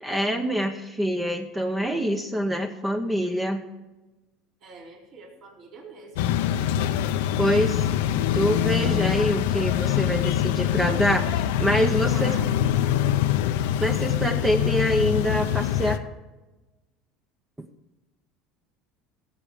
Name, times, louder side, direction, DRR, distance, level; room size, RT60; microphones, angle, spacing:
voice 1, 0.0-3.6 7.4-7.9 8.3-12.4 13.8-16.0 17.6-17.7, equal, 10° right, 5 dB, 0.8 m, -25 dB
voice 2, 4.6-6.3 12.1-12.6, right 3 dB, 55° right, -2 dB, 3.9 m, -44 dB
sound 1, 6.2-16.0, left 10 dB, 85° left, 0.7 m, -24 dB
16.5 x 7.8 x 5.0 m, 1.1 s
supercardioid pair, 120°, 0 cm